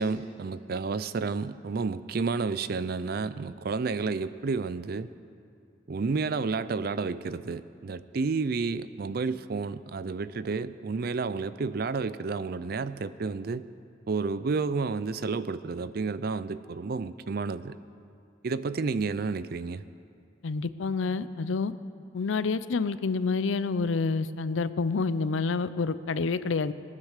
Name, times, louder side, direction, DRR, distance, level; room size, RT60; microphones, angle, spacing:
voice 1, 0.0-5.1 5.9-13.6 14.1-17.8 18.4-19.8, right 4 dB, 50° right, 15 dB, 0.4 m, -31 dB
voice 2, 20.4-21.7 22.1-26.7, left 4 dB, 80° left, 14 dB, 0.5 m, -28 dB
19.0 x 9.6 x 6.6 m, 2.4 s
head